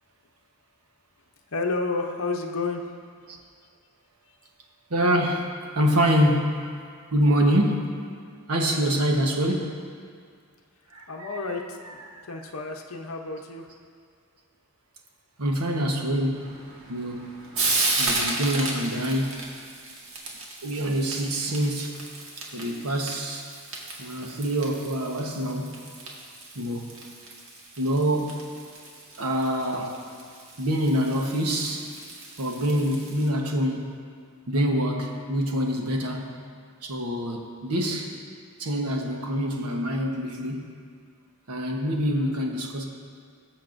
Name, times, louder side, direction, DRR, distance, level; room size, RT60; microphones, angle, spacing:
voice 1, 1.5-2.9 11.1-11.8 12.1-13.7 42.0-42.5, left 3 dB, 65° left, 2 dB, 0.8 m, -31 dB
voice 2, 4.9-6.7 7.1-8.0 8.5-9.8 10.9-11.4 12.1-12.2 15.4-16.5 16.9-17.3 18.0-19.4 20.6-22.0 22.5-23.5 24.0-25.8 26.5-26.9 27.8-28.5 29.2-30.0 30.6-31.9 32.4-34.0 34.5-36.3 36.8-38.1 38.6-40.8 41.5-42.9, equal, 90° right, 1 dB, 1.1 m, -25 dB
Frying (food), 16.3-33.3, right 2 dB, 65° right, 1.5 m, -34 dB
19.5 x 6.9 x 2.6 m, 2.1 s
head